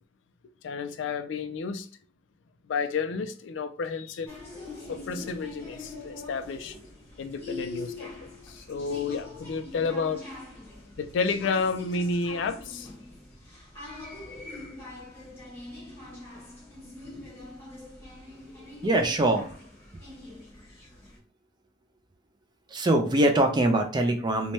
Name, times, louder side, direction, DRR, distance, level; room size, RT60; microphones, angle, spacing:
voice 1, 0.6-1.9 2.7-4.4 4.9-6.8 7.2-8.1 8.4-10.2 11.0-12.9, left 4 dB, 70° left, 0.3 m, -31 dB
sound 1, 4.3-21.2, left 2 dB, 10° left, 1.0 m, -43 dB
voice 2, 18.8-19.4 22.7-24.5, right 1 dB, 20° right, 0.4 m, -23 dB
3.1 x 2.2 x 2.7 m
head